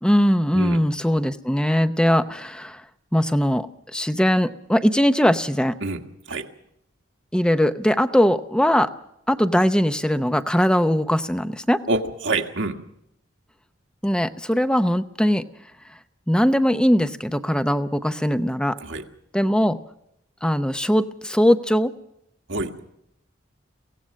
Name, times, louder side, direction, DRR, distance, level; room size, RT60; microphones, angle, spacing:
voice 1, 0.0-2.8 3.1-3.7 3.9-5.8 7.3-8.9 9.3-11.8 14.0-15.4 16.3-18.8 19.3-19.8 20.4-21.9, equal, 5° left, 10 dB, 0.7 m, -20 dB
voice 2, 11.9-12.8 18.8-19.0 22.5-22.8, right 2 dB, 75° right, 4 dB, 1.6 m, -26 dB
23.5 x 17.0 x 6.4 m, 0.78 s
head